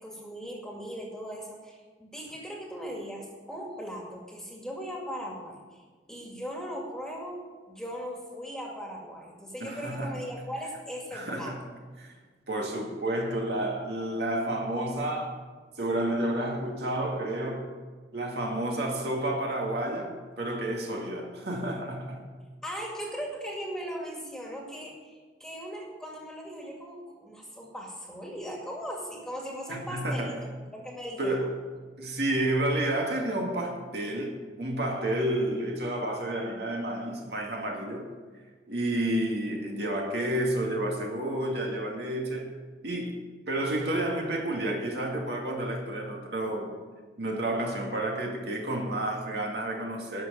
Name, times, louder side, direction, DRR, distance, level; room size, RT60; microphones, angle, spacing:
voice 1, 0.0-5.8 6.1-11.6 22.6-31.5 36.1-36.6, equal, 5° left, 2.1 m, -39 dB
voice 2, 9.6-10.2 11.1-11.6 12.0-12.1 12.5-15.3 15.8-17.7 18.1-22.3 29.7-30.3 31.2-31.5 32.0-38.1 38.7-42.6 42.8-46.8 47.2-50.3, right 1 dB, 65° right, 2.3 m, -30 dB
12.5 x 6.3 x 8.6 m
head